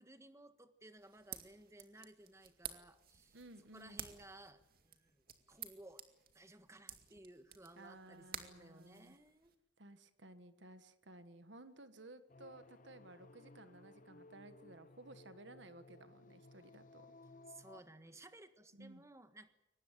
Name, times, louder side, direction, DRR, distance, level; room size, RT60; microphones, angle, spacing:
voice 1, 0.0-3.4 3.7-6.0 6.3-9.5 17.5-19.5, right 1 dB, 15° right, 9 dB, 1.6 m, -58 dB
sound 1, 1.0-9.5, right 9 dB, 50° right, 2.3 m, -53 dB
voice 2, 3.3-4.1 7.8-9.2 9.8-17.1 18.7-19.0, right 2 dB, 70° right, 10 dB, 1.7 m, -57 dB
sound 2, 12.3-17.8, left 2 dB, 45° left, 0.8 m, -60 dB
23.5 x 19.5 x 9.3 m, 0.91 s
head